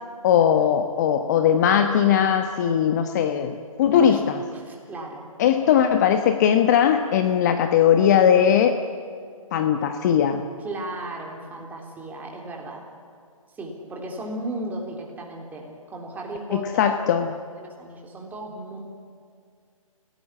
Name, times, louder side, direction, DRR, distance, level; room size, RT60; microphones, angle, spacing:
voice 1, 0.2-4.4 5.4-8.8 9.5-10.4 16.5-17.4, left 8 dB, 30° left, 7 dB, 1.1 m, -19 dB
voice 2, 3.9-4.2 4.5-5.2 10.6-12.9 13.6-16.8 17.6-18.8, right 1 dB, 10° right, 0 dB, 3.4 m, -35 dB
29.5 x 18.0 x 9.9 m, 2.1 s
figure-of-eight pair, 130°, 18 cm